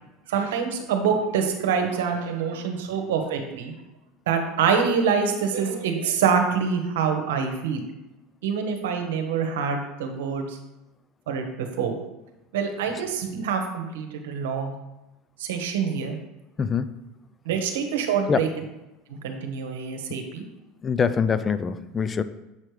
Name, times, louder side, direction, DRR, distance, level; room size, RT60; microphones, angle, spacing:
voice 1, 0.3-3.7 4.3-7.8 8.4-10.6 11.3-12.0 12.5-14.7 15.4-16.2 17.4-18.5 19.2-20.4, right 6 dB, 85° right, 5 dB, 0.9 m, -25 dB
voice 2, 16.6-16.9 18.3-18.4 20.8-22.2, left 6 dB, 25° left, 13 dB, 0.3 m, -24 dB
7.2 x 4.5 x 3.2 m, 0.99 s
supercardioid pair, 100°, 0 cm